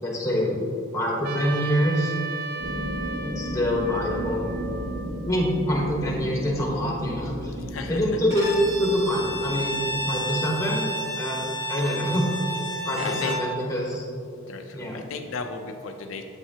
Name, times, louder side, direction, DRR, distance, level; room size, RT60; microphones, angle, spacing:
voice 1, 0.0-0.6 0.9-2.2 3.2-4.5 5.2-7.5 7.9-8.5 8.8-9.7 10.0-10.9 11.1-11.4 11.7-12.3 12.8-14.0 14.7-15.0, equal, 15° left, -2 dB, 1.0 m, -25 dB
Trumpet, 1.2-5.7, right 4 dB, 50° right, 0.4 m, -36 dB
sound 1, 2.6-11.0, right 1 dB, 65° right, 0.9 m, -35 dB
Bowed string instrument, 8.3-13.5, equal, 15° right, 1.4 m, -31 dB
voice 2, 12.7-13.4 14.5-16.2, left 4 dB, 75° left, 5 dB, 0.4 m, -35 dB
8.0 x 5.6 x 2.8 m, 2.5 s
head